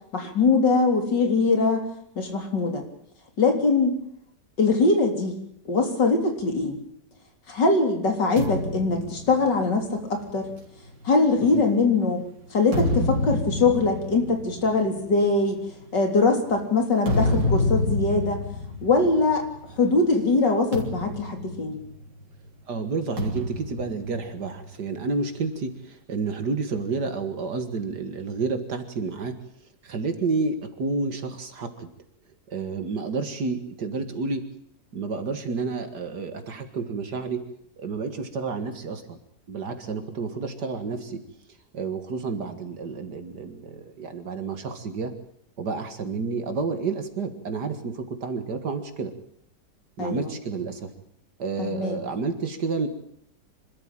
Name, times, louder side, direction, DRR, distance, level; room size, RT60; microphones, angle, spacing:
voice 1, 0.1-1.9 2.2-2.8 3.4-4.0 4.6-5.3 5.7-6.8 7.5-10.5 11.0-12.2 12.5-15.6 15.9-18.4 18.8-19.5 19.8-21.8 50.0-50.3 51.6-52.0, left 3 dB, 85° left, 4 dB, 4.2 m, -22 dB
sound 1, 8.4-12.0 12.5-19.9 20.1-20.4 20.7-22.3 23.2-24.9, left 2 dB, 85° right, 4.0 m, -29 dB
voice 2, 22.7-29.3 29.8-31.9 32.5-34.4 34.9-37.4 37.8-39.2 39.5-41.2 41.7-45.1 45.6-49.1 50.0-50.9 51.4-52.9, right 4 dB, 70° right, 8 dB, 2.4 m, -30 dB
26.0 x 13.0 x 9.0 m, 0.73 s
omnidirectional pair, 1.8 m